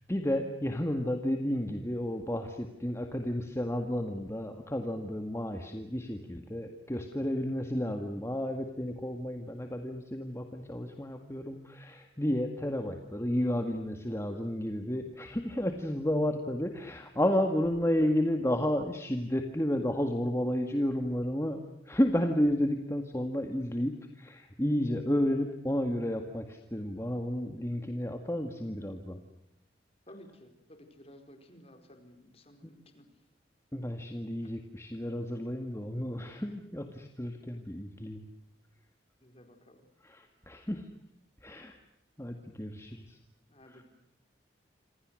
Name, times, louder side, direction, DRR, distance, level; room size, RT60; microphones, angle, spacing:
voice 1, 0.1-21.6 21.9-29.2 32.6-32.7 33.7-38.2 40.0-40.8 41.4-41.8 42.2-43.2 43.7-43.8, left 1 dB, 15° left, 5 dB, 1.9 m, -32 dB
voice 2, 30.1-33.1 39.2-39.9 43.5-43.8, left 1 dB, 35° left, 7 dB, 4.6 m, -55 dB
27.5 x 27.0 x 6.4 m, 0.83 s
head